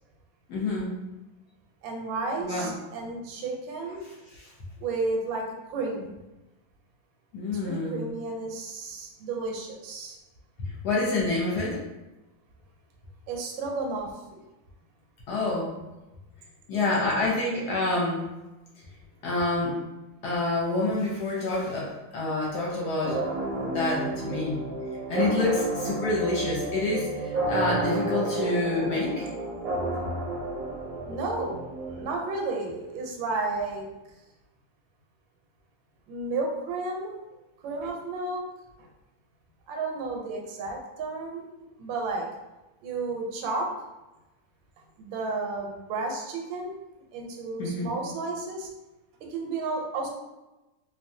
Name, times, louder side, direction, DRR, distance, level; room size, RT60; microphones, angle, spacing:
voice 1, 0.5-0.9 2.4-2.7 7.3-8.0 10.6-11.8 15.3-15.7 16.7-18.3 19.2-19.8 20.2-24.6 25.1-29.3 47.6-47.9, left 2 dB, 65° left, -4 dB, 1.1 m, -27 dB
voice 2, 1.8-4.0 4.8-6.2 7.5-10.2 13.3-14.4 31.1-33.9 36.1-37.1 37.6-38.4 39.7-41.5 41.8-42.3 42.8-43.7 45.0-46.8 47.1-48.7 49.3-50.1, right 3 dB, 80° right, 0 dB, 1.4 m, -32 dB
sound 1, 23.0-32.5, right 2 dB, 65° right, 0.9 m, -31 dB
3.0 x 2.3 x 2.6 m, 1.0 s
omnidirectional pair, 2.1 m